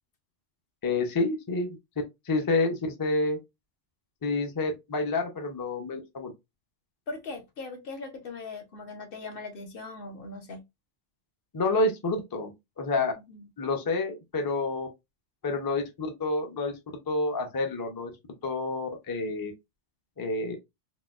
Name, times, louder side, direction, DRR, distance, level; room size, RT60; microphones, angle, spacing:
voice 1, 0.8-1.8 2.3-3.4 4.2-6.3 11.5-12.5 12.8-13.1 13.6-14.9 15.4-16.7 17.1-18.1 18.4-19.5 20.2-20.6, left 3 dB, 30° left, 0.4 m, -28 dB
voice 2, 7.1-10.6 13.3-13.5, left 3 dB, 55° left, 0.8 m, -40 dB
4.0 x 2.2 x 2.3 m
omnidirectional pair, 1.2 m